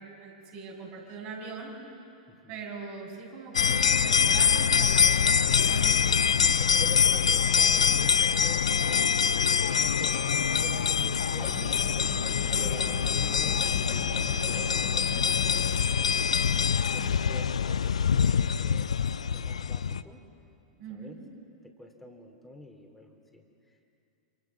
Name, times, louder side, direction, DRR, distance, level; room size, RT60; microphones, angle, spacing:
voice 1, 0.2-1.7 2.5-6.5 12.5-12.7 17.0-17.2 20.8-21.1, right 4 dB, 45° right, -1 dB, 6.8 m, -41 dB
voice 2, 2.3-2.6 6.6-11.9 12.6-16.2 16.9-20.2 20.9-21.2 21.6-23.9, equal, 5° left, 1 dB, 3.2 m, -47 dB
sound 1, 3.5-20.0, left 7 dB, 75° left, 0.5 m, -25 dB
sound 2, 11.4-15.8, left 4 dB, 30° left, 3.1 m, -39 dB
27.0 x 25.5 x 6.1 m, 2.6 s
figure-of-eight pair, 100°, 3 cm